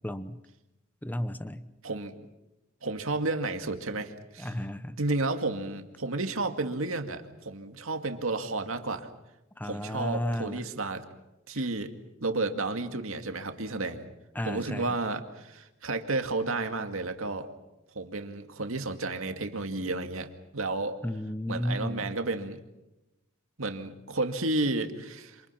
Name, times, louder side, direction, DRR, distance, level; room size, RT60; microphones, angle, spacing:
voice 1, 0.0-0.4 1.0-1.7 4.4-5.0 9.6-10.7 14.3-15.0 21.0-22.1, left 1 dB, 10° left, 12 dB, 0.9 m, -33 dB
voice 2, 1.8-2.1 2.8-4.5 5.0-9.1 9.6-11.0 11.5-11.9 12.2-14.1 14.4-17.5 17.9-21.0 21.5-22.6 23.6-25.4, right 2 dB, 90° right, 6 dB, 2.2 m, -32 dB
27.5 x 27.0 x 5.8 m, 0.94 s
head